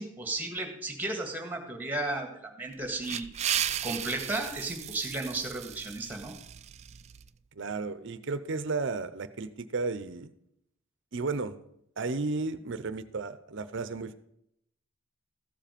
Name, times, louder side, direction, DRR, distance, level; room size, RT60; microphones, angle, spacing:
voice 1, 0.0-2.3 2.6-3.3 3.8-6.4, right 2 dB, 10° right, 3 dB, 1.7 m, -34 dB
sound 1, 2.7-7.3, right 10 dB, 30° right, 0.3 m, -35 dB
voice 2, 7.5-10.3 11.1-11.5 12.0-14.2, right 3 dB, 60° right, 13 dB, 0.7 m, -33 dB
14.0 x 7.5 x 5.2 m, 0.75 s
head